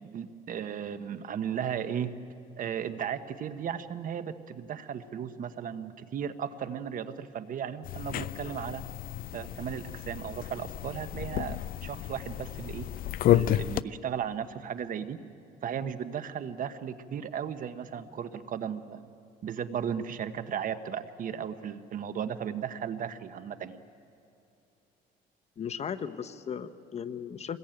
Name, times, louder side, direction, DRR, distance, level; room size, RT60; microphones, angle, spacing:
voice 1, 0.0-2.1 2.6-8.8 9.3-12.9 13.3-15.2 15.6-19.0 19.4-23.8, right 8 dB, 55° right, 11 dB, 1.2 m, -35 dB
sound 1, 7.8-13.8, left 13 dB, 60° left, 0.5 m, -31 dB
voice 2, 25.6-27.6, left 7 dB, 40° left, 12 dB, 0.9 m, -36 dB
26.0 x 21.0 x 9.1 m, 2.6 s
cardioid pair, 110°, 17 cm